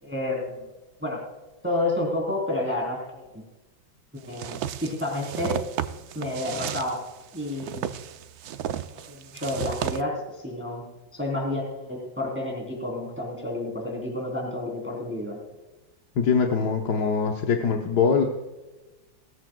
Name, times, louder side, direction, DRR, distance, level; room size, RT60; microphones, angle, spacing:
voice 1, 0.0-0.6 1.0-1.2 1.6-3.3 4.1-5.6 6.1-7.0 7.3-7.8 9.1-10.8 11.1-15.4, left 1 dB, 5° right, -1 dB, 3.2 m, -30 dB
sound 1, 4.3-10.0, right 9 dB, 65° right, 1.0 m, -33 dB
voice 2, 16.1-18.2, left 5 dB, 60° left, 2 dB, 1.5 m, -23 dB
19.0 x 14.0 x 2.3 m, 1.1 s
omnidirectional pair, 2.0 m